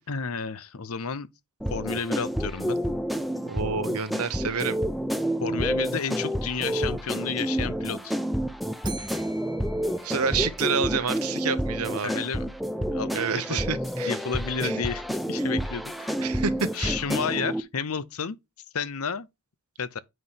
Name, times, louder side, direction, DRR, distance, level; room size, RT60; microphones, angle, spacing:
voice 1, 0.1-1.3 1.7-2.8 5.4-8.2 12.0-12.5 12.9-13.7 14.1-16.2 16.7-18.4 18.7-19.3 19.8-20.0, left 5 dB, 75° left, 0.8 m, -31 dB
sound 1, 1.6-17.6, equal, ahead, 0.6 m, -29 dB
voice 2, 3.5-4.8 10.0-12.2 13.1-14.2 14.6-14.8 16.2-17.0, right 5 dB, 90° right, 1.0 m, -28 dB
Bell, 8.8-11.0, right 5 dB, 20° right, 1.2 m, -45 dB
9.4 x 3.2 x 5.6 m
head